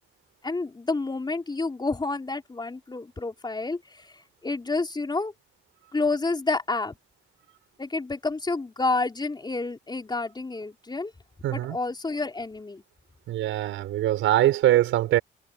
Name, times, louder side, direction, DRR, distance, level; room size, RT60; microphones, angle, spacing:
voice 1, 0.4-5.3 5.9-6.9 7.8-11.1 11.5-12.8, left 3 dB, 20° left, 4.2 m, -29 dB
voice 2, 11.4-11.8 13.3-15.2, right 13 dB, 85° right, 5.1 m, -22 dB
cardioid pair, 90°, 20 cm